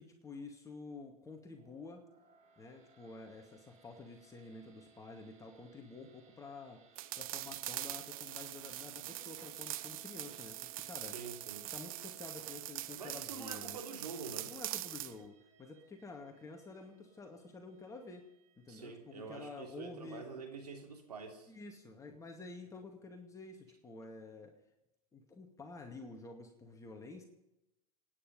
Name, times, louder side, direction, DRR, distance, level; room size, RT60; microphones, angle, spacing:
voice 1, 0.0-2.0 2.6-6.8 7.2-11.2 11.7-13.8 14.5-18.3 18.6-20.2 21.5-24.5 25.1-27.2, left 3 dB, 15° left, 3 dB, 2.3 m, -50 dB
sound 1, 1.5-19.8, right 4 dB, 35° right, 2.7 m, -67 dB
sound 2, 7.0-15.2, right 14 dB, 60° right, 1.0 m, -43 dB
voice 2, 11.0-11.7 13.0-14.5 18.7-21.5, right 4 dB, 85° right, 3 dB, 3.4 m, -46 dB
26.0 x 10.0 x 5.4 m, 0.91 s
hypercardioid pair, 105°, 20 cm